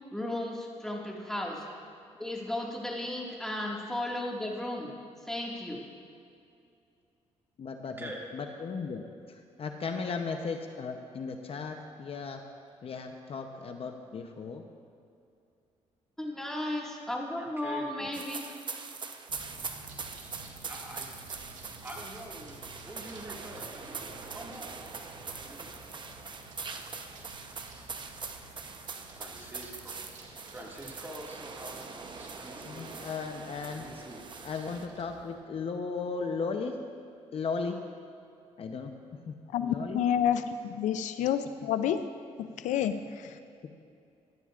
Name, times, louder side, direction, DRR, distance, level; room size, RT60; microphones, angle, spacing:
voice 1, 0.1-1.7 2.2-4.9 5.3-5.9 16.2-18.4, left 1 dB, 5° left, -2 dB, 1.9 m, -35 dB
voice 2, 7.6-12.4 12.8-14.6 32.6-33.8 34.4-36.8 37.3-37.8 38.6-38.9 39.3-40.0, left 4 dB, 50° left, 4 dB, 0.8 m, -36 dB
voice 3, 17.4-17.9 20.6-21.3 21.7-24.8 25.4-25.7 29.2-30.1 30.5-33.0 33.7-34.3, right 1 dB, 15° right, -2 dB, 2.0 m, -46 dB
sound 1, 18.1-34.9, right 4 dB, 40° right, 0.8 m, -43 dB
sound 2, 19.3-35.3, right 2 dB, 90° right, 1.5 m, -52 dB
voice 4, 39.5-42.0 42.6-42.9, left 9 dB, 85° left, 10 dB, 0.5 m, -28 dB
17.5 x 11.0 x 2.5 m, 2.5 s
cardioid pair, 90°, 12 cm